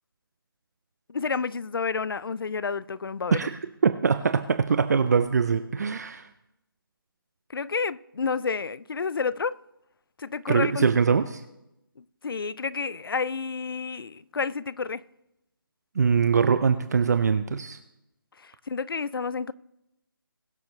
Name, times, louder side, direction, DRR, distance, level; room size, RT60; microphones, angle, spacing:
voice 1, 1.1-3.4 7.5-9.6 10.2-10.9 12.2-15.0 18.4-19.5, left 5 dB, 70° left, 0.5 m, -30 dB
voice 2, 3.8-6.3 10.5-11.4 16.0-17.8, right 6 dB, 45° right, 0.6 m, -22 dB
21.5 x 7.2 x 3.2 m
figure-of-eight pair, 160°, 12 cm